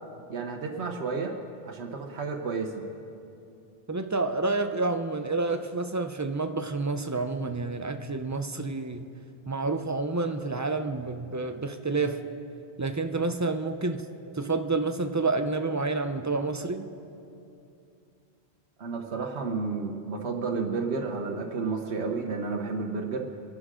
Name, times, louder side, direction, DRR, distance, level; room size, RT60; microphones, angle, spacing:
voice 1, 0.3-1.4 1.6-2.9 18.8-23.2, right 4 dB, 85° right, 2 dB, 1.3 m, -31 dB
voice 2, 3.9-9.1 9.5-12.2 12.8-14.0 14.3-16.9, right 3 dB, 20° right, 7 dB, 0.5 m, -29 dB
25.5 x 11.0 x 3.7 m, 2.6 s
omnidirectional pair, 1.1 m